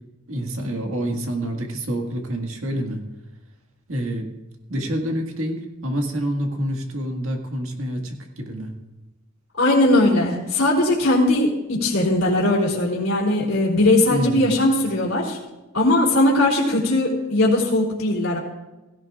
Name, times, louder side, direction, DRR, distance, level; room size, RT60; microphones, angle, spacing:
voice 1, 0.3-3.0 3.9-4.3 4.7-8.7 14.1-14.5, right 1 dB, 70° right, 2 dB, 1.8 m, -27 dB
voice 2, 9.6-15.4 15.7-18.4, left 1 dB, 75° left, -7 dB, 3.1 m, -19 dB
17.0 x 16.0 x 2.4 m, 1.0 s
head